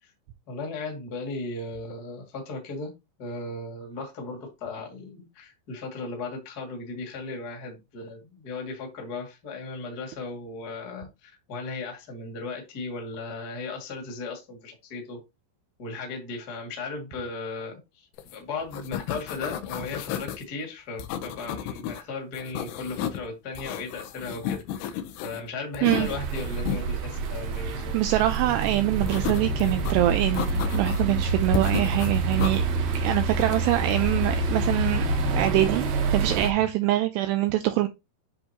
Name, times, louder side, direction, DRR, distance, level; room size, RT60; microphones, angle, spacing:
voice 1, 0.5-2.9 3.2-15.2 15.8-27.9 31.1-31.3, left 3 dB, 35° left, 1.5 m, -36 dB
sound 1, 18.2-18.4 18.6-20.4 21.0-22.0 22.3-23.2 23.5-25.4 25.7-26.8 29.1-29.9 30.3-31.1 31.5-32.6 33.4-33.8, left 10 dB, 80° left, 2.6 m, -33 dB
sound 2, 26.0-36.5, right 3 dB, 65° right, 2.2 m, -27 dB
voice 2, 27.6-32.7 32.9-35.0 35.4-35.9 36.1-37.9, right 14 dB, 85° right, 2.4 m, -24 dB
10.0 x 3.8 x 2.9 m
omnidirectional pair, 5.4 m